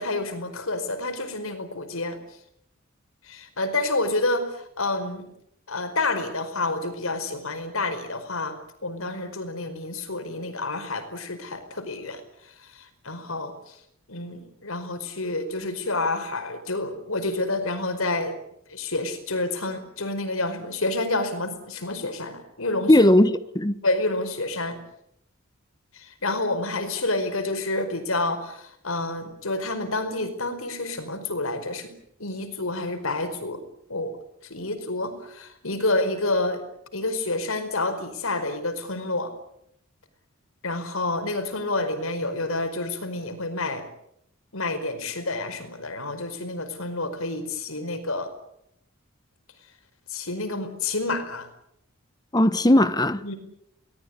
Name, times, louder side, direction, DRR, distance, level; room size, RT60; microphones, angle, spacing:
voice 1, 0.0-2.2 3.2-5.3 5.7-13.7 14.1-18.4 18.7-23.0 23.8-24.8 25.9-31.9 32.2-33.6 33.9-34.1 34.4-36.6 36.9-39.3 40.6-43.9 44.5-48.3 50.1-51.5 53.2-53.4, left 2 dB, 80° left, 4.9 m, -29 dB
voice 2, 22.9-23.3 23.5-23.8 52.3-53.4, left 1 dB, 20° left, 1.2 m, -17 dB
23.5 x 19.0 x 9.8 m
head